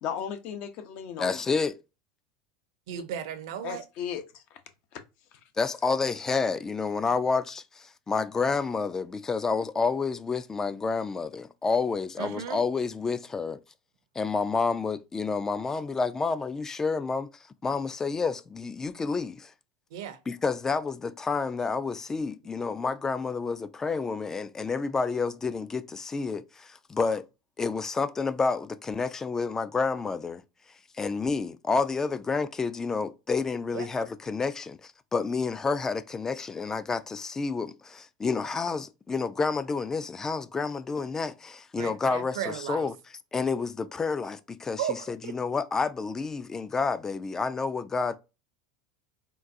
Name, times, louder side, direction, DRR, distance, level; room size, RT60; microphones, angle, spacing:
voice 1, 0.0-1.4 3.6-4.6 4.9-5.0 5.3-5.4, left 8 dB, 55° left, 0.7 m, -36 dB
voice 2, 1.2-1.8 5.6-13.6 14.2-17.3 17.6-19.5 20.3-27.2 27.6-30.4 31.0-42.9 43.3-48.1, left 4 dB, 20° left, 0.3 m, -29 dB
voice 3, 2.9-3.8 12.2-12.6 19.9-20.2 33.7-33.9 41.8-42.9 44.8-45.3, right 9 dB, 75° right, 0.6 m, -35 dB
3.8 x 2.3 x 2.6 m
hypercardioid pair, 95°, 3 cm